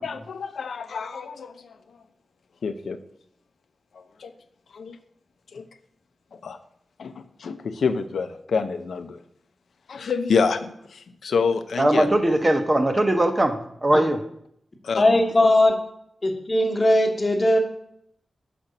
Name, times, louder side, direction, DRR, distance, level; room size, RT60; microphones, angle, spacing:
voice 1, 0.0-1.7 2.6-3.0 4.0-4.3 4.7-5.0 5.5-5.6 6.3-6.6 7.0-7.1 7.4-9.2 9.9-12.4 14.8-15.2, left 5 dB, 90° left, 9 dB, 0.6 m, -27 dB
voice 2, 11.8-14.2, right 1 dB, 20° right, 7 dB, 0.8 m, -20 dB
voice 3, 15.0-15.7 16.2-17.6, left 1 dB, 30° left, 3 dB, 1.1 m, -19 dB
5.8 x 5.1 x 6.6 m, 0.72 s
wide cardioid pair, 125°, 0 cm